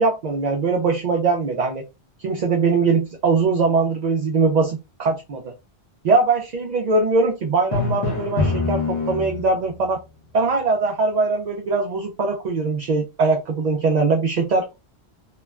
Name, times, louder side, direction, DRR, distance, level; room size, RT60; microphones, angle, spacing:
voice 1, 0.0-1.8 2.2-5.5 6.0-10.0 10.3-14.8, right 4 dB, 55° right, 1 dB, 0.5 m, -21 dB
Drum, 7.7-9.7, left 3 dB, 55° left, 1.0 m, -24 dB
2.9 x 2.1 x 2.3 m, 0.25 s
omnidirectional pair, 1.1 m